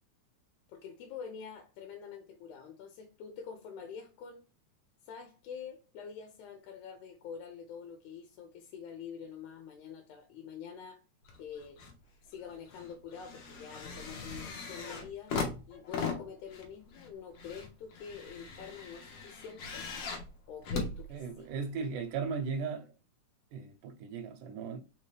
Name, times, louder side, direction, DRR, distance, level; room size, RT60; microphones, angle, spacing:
voice 1, 0.7-4.4 5.0-11.0 11.4-11.8 12.2-15.3 15.7-19.9 20.5-21.5, left 7 dB, 85° left, 2.1 m, -46 dB
sound 1, 11.2-12.0 12.3-21.7 22.5-22.6, left 4 dB, 65° left, 1.7 m, -40 dB
voice 2, 21.1-22.9 23.5-24.8, right 5 dB, 90° right, 2.2 m, -37 dB
5.1 x 2.9 x 3.2 m
omnidirectional pair, 3.5 m